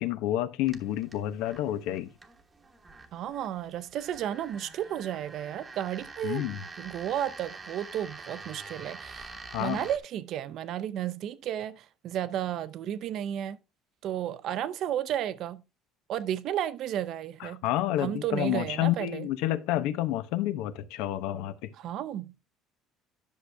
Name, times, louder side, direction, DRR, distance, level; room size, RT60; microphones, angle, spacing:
voice 1, 0.0-2.1 6.2-6.6 9.5-9.9 17.4-21.7, left 13 dB, 75° left, 0.9 m, -29 dB
sound 1, 0.6-10.0, right 3 dB, 15° right, 1.0 m, -46 dB
voice 2, 3.1-6.4 6.8-9.3 9.6-13.6 14.0-15.6 16.1-17.6 18.0-19.3 21.8-22.6, right 11 dB, 45° right, 0.5 m, -33 dB
10.5 x 6.5 x 3.4 m
cardioid pair, 175°, 0 cm